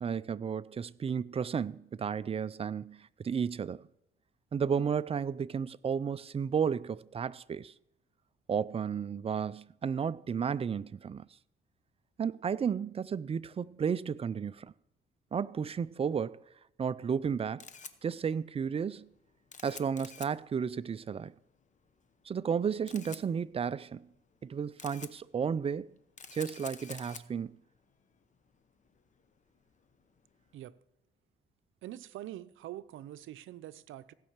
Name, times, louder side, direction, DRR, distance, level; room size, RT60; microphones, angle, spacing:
voice 1, 0.0-3.8 4.5-7.7 8.5-11.3 12.2-14.7 15.3-16.4 16.8-17.6 18.0-19.1 19.6-21.3 22.3-24.0 24.4-25.9 26.3-27.5, right 7 dB, 30° right, 0.4 m, -33 dB
Camera, 17.2-30.6, left 6 dB, 40° left, 0.9 m, -52 dB
voice 2, 31.8-34.1, right 13 dB, 80° right, 0.6 m, -44 dB
16.0 x 5.4 x 7.4 m
cardioid pair, 90°, 20 cm